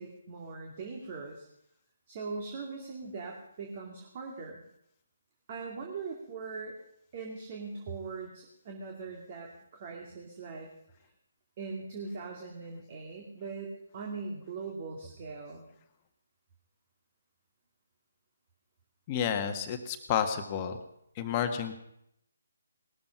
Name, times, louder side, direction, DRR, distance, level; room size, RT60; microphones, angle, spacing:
voice 1, 0.0-1.5 2.1-4.6 5.5-6.7 7.1-10.7 11.6-15.7, right 4 dB, 35° right, 1 dB, 2.4 m, -41 dB
voice 2, 19.1-20.8 21.2-21.7, left 8 dB, 25° left, 6 dB, 1.6 m, -30 dB
19.5 x 13.0 x 5.5 m, 0.75 s
figure-of-eight pair, 140°, 0 cm